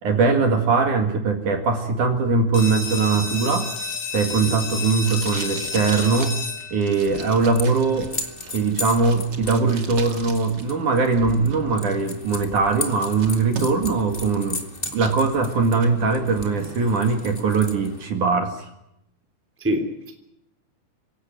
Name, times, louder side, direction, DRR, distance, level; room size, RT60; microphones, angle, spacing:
voice 1, 0.0-3.7 4.1-6.3 6.7-8.1 8.5-14.6 14.9-18.7, right 4 dB, 55° right, 5 dB, 3.2 m, -21 dB
sound 1, 2.5-8.0, left 4 dB, 75° left, 5.5 m, -31 dB
Packing tape duct tape, 3.1-10.6 10.9-11.9 12.4-12.5 12.8-14.0 14.4-15.2 15.6-15.9, right 4 dB, 35° right, 1.9 m, -39 dB
voice 2, 4.3-4.6 7.1-7.2 19.6-20.1, equal, 5° right, 5 dB, 2.4 m, -27 dB
sound 2, 6.9-18.1, left 2 dB, 20° left, 1.5 m, -36 dB
26.5 x 16.5 x 9.4 m, 0.84 s
omnidirectional pair, 4.8 m